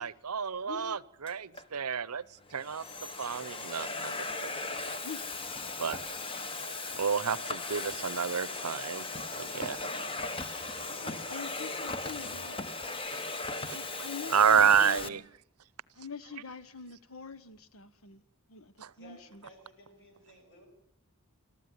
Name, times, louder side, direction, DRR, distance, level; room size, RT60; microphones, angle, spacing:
voice 1, 0.0-2.2 2.5-4.1 5.8-6.0 7.0-9.0 9.5-9.8 13.1-13.2 13.7-13.8 14.3-15.2 18.8-18.9, right 7 dB, 85° right, 0.8 m, -29 dB
voice 2, 0.6-1.0 5.0-5.2 10.9-12.6 13.7-15.3 15.9-18.2 18.5-19.4, left 5 dB, 70° left, 1.2 m, -45 dB
Domestic sounds home sounds, 1.3-1.6 2.4-15.1, left 3 dB, 25° left, 1.1 m, -38 dB
voice 3, 4.0-5.2 8.3-9.4 9.7-10.2 10.6-12.8 18.9-20.7, left 1 dB, 55° left, 6.5 m, -53 dB
25.5 x 14.5 x 9.7 m
head